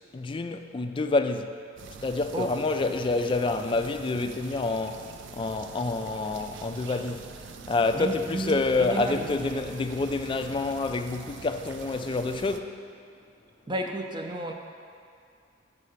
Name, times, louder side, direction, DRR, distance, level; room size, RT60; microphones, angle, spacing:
voice 1, 0.1-1.6 2.0-7.3 7.7-12.9, left 3 dB, 25° left, 0.3 m, -28 dB
sound 1, 1.8-12.6, right 5 dB, 70° right, 0.5 m, -44 dB
voice 2, 7.9-9.3 13.7-14.5, right 1 dB, 25° right, 0.6 m, -32 dB
7.5 x 5.7 x 6.4 m
head